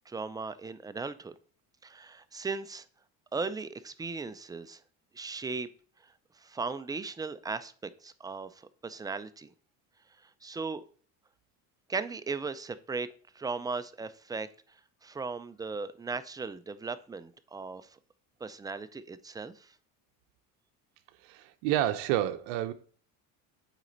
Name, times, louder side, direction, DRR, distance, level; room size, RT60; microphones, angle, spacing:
voice 1, 0.1-1.3 1.8-2.9 3.3-4.8 5.1-5.7 6.0-6.1 6.4-9.5 10.4-10.8 11.9-13.1 13.3-14.5 15.0-18.0 18.4-19.7, right 4 dB, 10° right, 0.4 m, -37 dB
voice 2, 21.2-22.7, right 12 dB, 80° right, 0.7 m, -29 dB
8.2 x 4.2 x 3.9 m
supercardioid pair, 95°, 41 cm